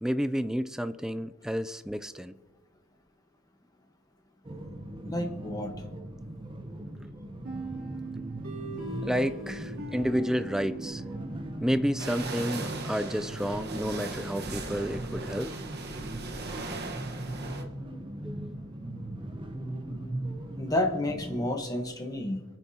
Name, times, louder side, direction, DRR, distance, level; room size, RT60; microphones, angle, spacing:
voice 1, 0.0-2.3 9.0-11.0 11.6-15.5 18.2-18.5, equal, 5° right, 12 dB, 0.4 m, -30 dB
sound 1, 4.5-21.5, right 1 dB, 25° right, 0.9 m, -39 dB
voice 2, 5.0-5.7 20.6-22.4, left 1 dB, 15° left, 3 dB, 1.2 m, -30 dB
sound 2, 7.4-12.1, right 2 dB, 85° right, 3.0 m, -41 dB
sound 3, 12.0-17.6, right 3 dB, 50° right, 1.3 m, -38 dB
25.0 x 10.0 x 2.9 m, 1.3 s
head